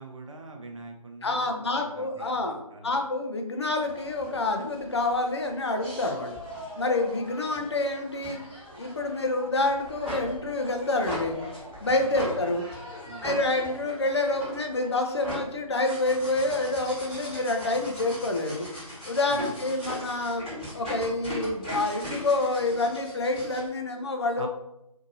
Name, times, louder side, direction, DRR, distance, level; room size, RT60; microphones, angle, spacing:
voice 1, 0.0-3.0 12.0-12.2 13.0-13.3 19.3-19.4 24.4-24.5, right 3 dB, 55° right, 4 dB, 0.5 m, -43 dB
voice 2, 1.2-6.4 6.8-8.4 8.8-11.4 11.8-12.6 13.2-18.7 19.1-20.4 20.7-24.5, left 2 dB, 45° left, 3 dB, 0.4 m, -27 dB
sound 1, 3.8-23.7, equal, ahead, 1.2 m, -40 dB
2.7 x 2.6 x 2.6 m, 0.85 s
figure-of-eight pair, 160°, 19 cm